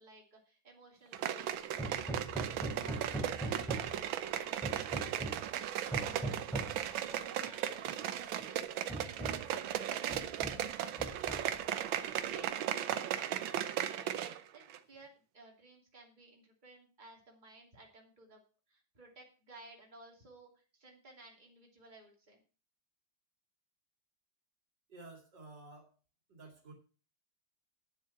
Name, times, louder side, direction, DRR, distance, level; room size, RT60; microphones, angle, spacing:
voice 1, 0.0-18.4 18.7-22.4, right 2 dB, 25° right, -1 dB, 2.9 m, -58 dB
sound 1, 1.1-14.4 14.7-14.8, right 10 dB, 90° right, 1.6 m, -36 dB
Hammer, 1.8-4.1 4.6-5.5 5.9-6.8 7.9-8.0 8.4-8.5 8.9-9.5 10.1-10.7 11.0-11.7, right 2 dB, ahead, 3.0 m, -40 dB
voice 2, 24.9-25.9 26.3-26.7, right 2 dB, 65° right, 2 dB, 3.1 m, -52 dB
9.6 x 7.3 x 5.9 m, 0.36 s
omnidirectional pair, 2.1 m